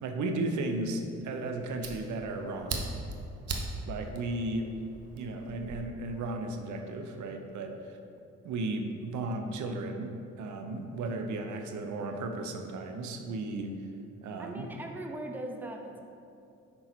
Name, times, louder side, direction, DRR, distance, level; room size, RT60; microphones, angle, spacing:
voice 1, 0.0-2.8 3.8-8.0 8.4-10.1 10.4-13.8 14.2-14.7, right 2 dB, 75° right, 5 dB, 0.8 m, -35 dB
Fire, 1.2-5.8, right 3 dB, 55° right, 1.0 m, -40 dB
voice 2, 14.4-16.0, right 1 dB, 5° right, 3 dB, 0.7 m, -40 dB
6.7 x 5.5 x 4.4 m, 2.6 s
cardioid pair, 90°, 30 cm